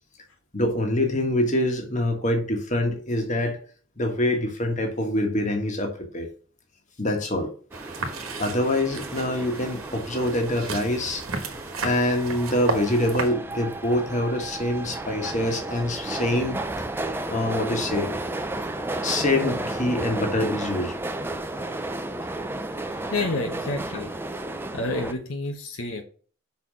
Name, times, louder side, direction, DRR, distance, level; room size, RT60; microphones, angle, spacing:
voice 1, 0.5-3.6 4.0-6.3 7.0-7.5 8.4-11.2 11.8-16.6 17.3-18.1 19.0-20.9, left 1 dB, 35° left, 3 dB, 1.5 m, -25 dB
sound 1, 7.7-25.1, right 2 dB, 10° right, 0.5 m, -33 dB
sound 2, 7.7-13.3, right 3 dB, 80° right, 1.3 m, -34 dB
voice 2, 23.1-24.1 24.7-26.0, left 2 dB, 70° left, 3 dB, 1.0 m, -29 dB
5.7 x 4.3 x 6.2 m, 0.42 s
head